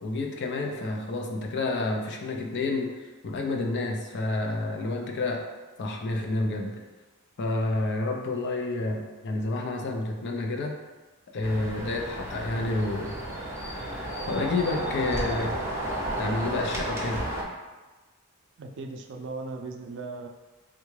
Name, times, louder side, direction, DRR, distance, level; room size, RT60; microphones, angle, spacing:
voice 1, 0.0-5.4 5.8-6.8 7.4-10.7 11.3-13.2 13.5-15.5 16.2-17.2, left 2 dB, 50° left, 2 dB, 0.4 m, -29 dB
sound 1, 11.4-17.4, right 1 dB, 10° right, 0.6 m, -32 dB
voice 2, 18.6-20.3, right 3 dB, 55° right, 4 dB, 0.3 m, -37 dB
3.7 x 2.3 x 3.1 m, 1.2 s
head